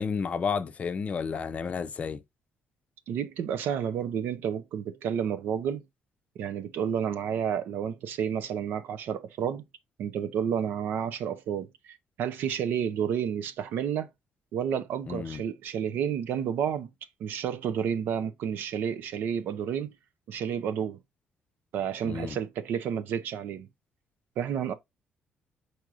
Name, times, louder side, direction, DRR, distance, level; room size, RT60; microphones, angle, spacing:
voice 1, 0.0-2.2 15.1-15.4 22.1-22.4, left 6 dB, 40° left, 0.6 m, -31 dB
voice 2, 3.1-5.8 6.4-9.6 10.0-14.1 14.5-16.9 17.2-19.9 20.3-21.0 21.7-23.7 24.4-24.7, right 8 dB, 75° right, 0.7 m, -30 dB
4.7 x 4.5 x 2.5 m
cardioid pair, 100°, 3 cm